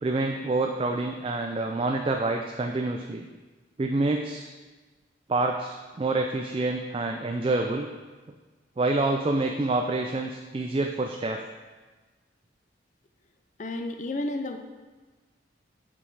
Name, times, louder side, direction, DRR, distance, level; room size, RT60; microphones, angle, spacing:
voice 1, 0.0-3.3 3.8-4.5 5.3-7.9 8.8-11.4, right 2 dB, 30° right, 3 dB, 0.3 m, -27 dB
voice 2, 13.6-14.6, left 2 dB, 40° left, 6 dB, 0.4 m, -31 dB
6.4 x 5.9 x 4.6 m, 1.3 s
head